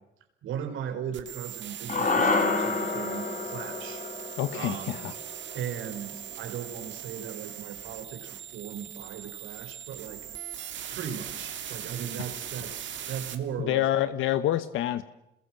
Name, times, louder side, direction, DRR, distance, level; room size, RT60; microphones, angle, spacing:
voice 1, 0.4-4.0 4.5-5.1 5.5-10.2 10.9-13.9, right 8 dB, 85° right, 7 dB, 4.5 m, -37 dB
sound 1, 1.1-13.3, right 10 dB, 70° right, 2.7 m, -40 dB
sound 2, 1.9-6.3, left 3 dB, 40° left, 4.0 m, -29 dB
voice 2, 4.4-5.1 13.6-15.0, left 12 dB, 90° left, 13 dB, 1.1 m, -27 dB
28.0 x 21.5 x 7.6 m, 0.87 s
cardioid pair, 90°, 20 cm